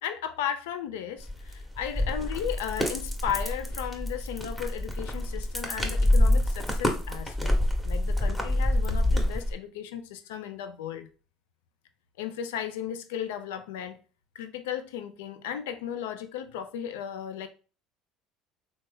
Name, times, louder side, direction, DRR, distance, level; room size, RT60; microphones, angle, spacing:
voice 1, 0.0-7.6 7.8-11.1 12.2-14.0 14.3-17.5, left 9 dB, 85° left, 0.4 m, -35 dB
sound 1, 1.2-9.5, left 1 dB, 10° left, 0.9 m, -27 dB
3.2 x 2.0 x 3.4 m
supercardioid pair, 80°, 0 cm